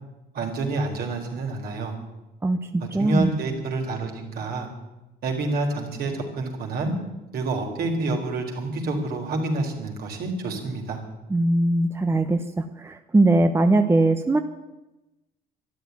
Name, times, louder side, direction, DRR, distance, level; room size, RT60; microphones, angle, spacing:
voice 1, 0.3-1.9 2.8-4.7 5.2-6.9 7.3-11.0, right 2 dB, 65° right, 1 dB, 4.0 m, -28 dB
voice 2, 2.4-3.3 11.3-14.4, right 2 dB, 15° right, 7 dB, 0.9 m, -21 dB
13.0 x 11.5 x 9.5 m, 1.0 s
cardioid pair, 110°, 17 cm